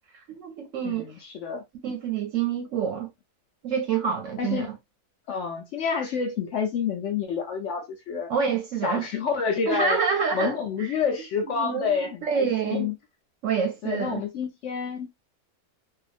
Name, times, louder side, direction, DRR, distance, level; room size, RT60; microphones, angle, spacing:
voice 1, 0.3-1.1 1.8-3.1 3.6-4.8 8.3-9.1 9.7-10.9 11.5-12.9 13.4-14.2, right 6 dB, 65° right, 0.9 m, -27 dB
voice 2, 0.8-1.6 4.4-4.7 5.3-8.3 8.8-10.0 10.3-12.9 13.8-15.1, left 6 dB, 70° left, 0.7 m, -28 dB
2.6 x 2.3 x 2.4 m
omnidirectional pair, 1.6 m